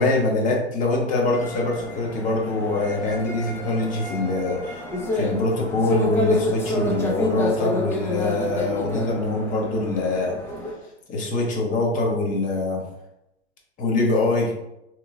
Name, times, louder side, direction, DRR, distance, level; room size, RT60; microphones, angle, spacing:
voice 1, 0.0-4.8 5.1-10.3 11.1-12.8 13.8-14.5, left 2 dB, 25° left, 0 dB, 0.8 m, -24 dB
sound 1, 1.3-10.7, left 1 dB, 5° left, 0.4 m, -29 dB
3.6 x 3.0 x 2.4 m, 0.87 s
hypercardioid pair, 110°, 34 cm